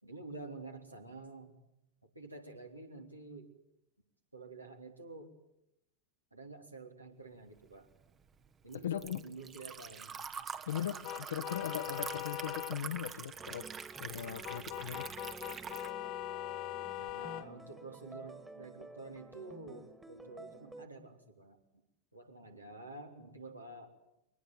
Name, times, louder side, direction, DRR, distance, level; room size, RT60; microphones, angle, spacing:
voice 1, 0.0-1.6 2.0-3.5 4.3-5.3 6.3-7.9 8.6-10.1 17.0-21.6 22.1-24.0, right 3 dB, 85° right, 2 dB, 3.5 m, -49 dB
Liquid, 7.6-15.9, right 6 dB, 25° right, 1.2 m, -45 dB
voice 2, 8.8-9.2 10.7-13.7 14.0-15.1, left 10 dB, 65° left, 11 dB, 1.2 m, -39 dB
sound 1, 11.0-12.8 14.4-17.5, left 15 dB, 40° left, 1.1 m, -41 dB
sound 2, 13.4-20.9, right 2 dB, 5° right, 2.0 m, -52 dB
23.0 x 19.5 x 9.5 m, 0.83 s
figure-of-eight pair, 90°, 0 cm